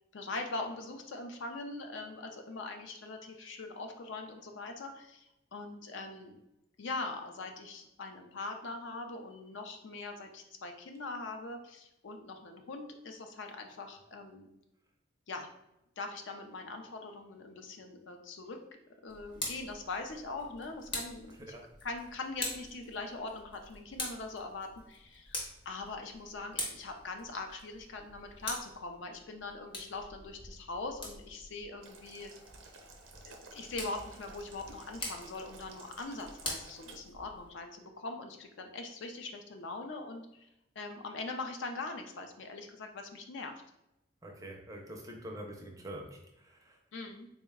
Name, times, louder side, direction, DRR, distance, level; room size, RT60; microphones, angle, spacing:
voice 1, 0.1-6.4 6.8-14.5 15.3-15.5 16.0-18.6 19.0-21.5 21.8-32.3 33.2-40.5 40.8-43.5 46.9-47.3, left 3 dB, 65° left, 4 dB, 0.5 m, -42 dB
Tick, 19.1-37.5, left 1 dB, 25° left, 0.7 m, -45 dB
Boiling, 31.8-37.0, right 3 dB, 90° right, 0.6 m, -54 dB
voice 2, 44.2-46.8, right 1 dB, 15° right, 1 dB, 0.4 m, -45 dB
3.8 x 2.1 x 3.5 m, 0.87 s
head